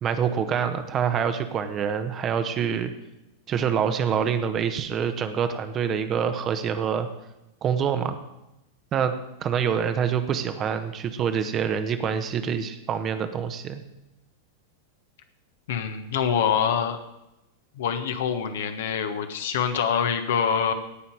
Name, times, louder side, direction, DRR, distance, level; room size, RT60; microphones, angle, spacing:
voice 1, 0.0-2.9 3.5-7.1 7.6-8.1 8.9-9.1 9.4-13.8, right 7 dB, 30° right, 9 dB, 1.1 m, -26 dB
voice 2, 15.7-17.0 17.8-20.7, left 7 dB, 55° left, 7 dB, 1.3 m, -25 dB
17.0 x 5.7 x 7.8 m, 0.93 s
figure-of-eight pair, 90°, 0 cm